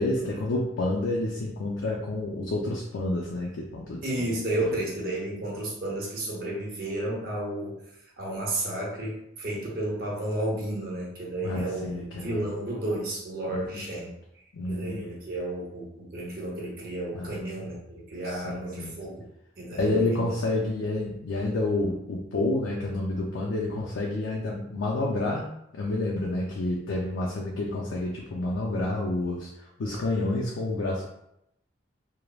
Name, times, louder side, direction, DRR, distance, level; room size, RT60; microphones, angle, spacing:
voice 1, 0.0-4.3 4.6-4.8 11.4-12.4 13.5-13.8 14.5-15.0 17.1-17.4 18.2-18.9 19.7-25.5 25.7-31.1, left 2 dB, 85° left, -3 dB, 0.4 m, -29 dB
voice 2, 4.0-7.7 8.2-14.1 14.7-19.2 19.6-20.3, right 1 dB, 50° right, -4 dB, 0.8 m, -32 dB
3.1 x 2.0 x 2.3 m, 0.79 s
head